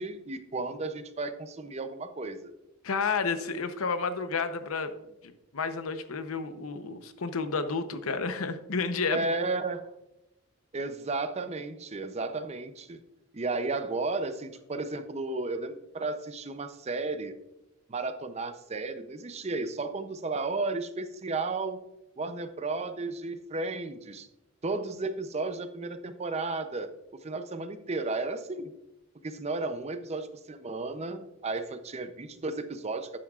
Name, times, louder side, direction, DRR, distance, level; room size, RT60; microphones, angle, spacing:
voice 1, 0.0-2.5 9.1-9.8 10.7-13.0 13.3-17.3 17.9-21.8 22.2-24.3 24.6-26.9 27.2-28.7 29.2-33.2, right 3 dB, 30° right, 9 dB, 0.5 m, -33 dB
voice 2, 2.8-4.9 5.2-9.2, left 4 dB, 85° left, 10 dB, 0.8 m, -31 dB
12.0 x 8.7 x 2.4 m, 0.92 s
head